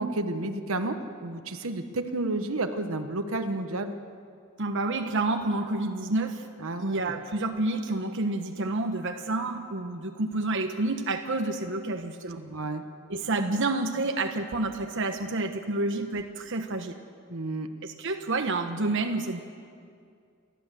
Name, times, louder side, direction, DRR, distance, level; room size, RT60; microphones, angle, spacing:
voice 1, 0.0-3.9 6.6-7.1 12.3-12.8 17.3-17.7, right 2 dB, 80° right, 7 dB, 1.2 m, -31 dB
voice 2, 4.6-6.5 6.8-12.4 13.1-17.0 17.8-19.4, right 2 dB, 60° right, 5 dB, 1.1 m, -29 dB
29.0 x 12.5 x 7.5 m, 2.3 s
head